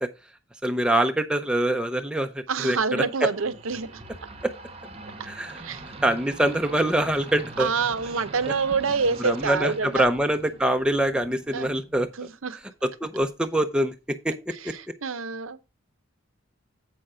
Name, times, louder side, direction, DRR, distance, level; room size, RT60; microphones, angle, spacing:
voice 1, 0.6-3.3 4.4-4.5 5.2-5.6 6.0-7.7 8.4-8.5 9.2-12.1 12.8-14.7, right 1 dB, 5° right, 0.5 m, -24 dB
voice 2, 2.5-3.9 5.6-5.8 7.6-10.0 11.5-11.7 12.2-12.6 15.0-15.6, right 5 dB, 85° right, 0.7 m, -26 dB
sound 1, 2.9-12.3, right 2 dB, 30° right, 0.9 m, -43 dB
7.6 x 5.6 x 4.8 m
head